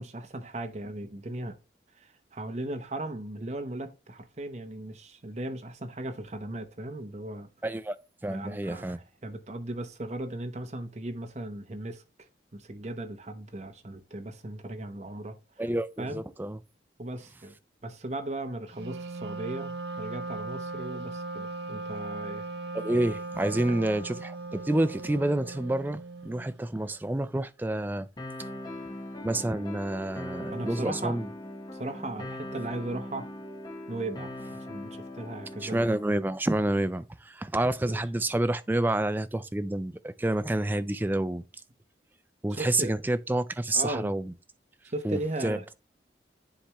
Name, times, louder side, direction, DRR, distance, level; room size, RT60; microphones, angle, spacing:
voice 1, 0.0-1.6 1.9-7.5 8.3-12.0 12.5-15.4 16.0-16.2 17.0-17.6 17.8-22.4 23.5-23.8 30.5-31.2 31.8-33.3 33.9-35.9 37.9-38.0 42.5-42.9 43.7-44.1 44.8-45.6, right 2 dB, 40° right, 0.9 m, -37 dB
voice 2, 7.6-8.0 8.2-9.0 15.6-16.6 22.7-28.1 29.2-31.3 35.6-41.4 42.4-44.3 45.0-45.7, right 1 dB, 10° right, 0.3 m, -28 dB
Wind instrument woodwind instrument, 18.7-26.6, right 3 dB, 70° right, 0.8 m, -38 dB
sound 1, 28.2-36.2, left 1 dB, 25° left, 0.8 m, -40 dB
10.0 x 3.5 x 2.9 m
head